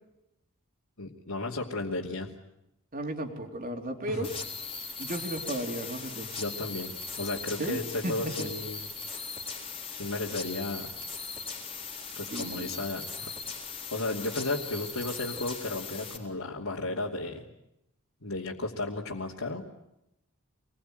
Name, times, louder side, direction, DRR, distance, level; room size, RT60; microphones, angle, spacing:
voice 1, 1.0-2.3 4.1-4.3 6.4-8.9 10.0-10.9 12.2-13.3 13.9-17.5 18.2-19.7, left 2 dB, 75° left, -3 dB, 2.8 m, -34 dB
voice 2, 2.9-4.3 5.0-6.3 7.6-8.5 12.3-12.8, right 1 dB, 40° right, 3 dB, 3.5 m, -34 dB
sound 1, 4.2-16.2, left 5 dB, 25° left, 3.7 m, -39 dB
27.0 x 21.0 x 9.3 m, 0.86 s
head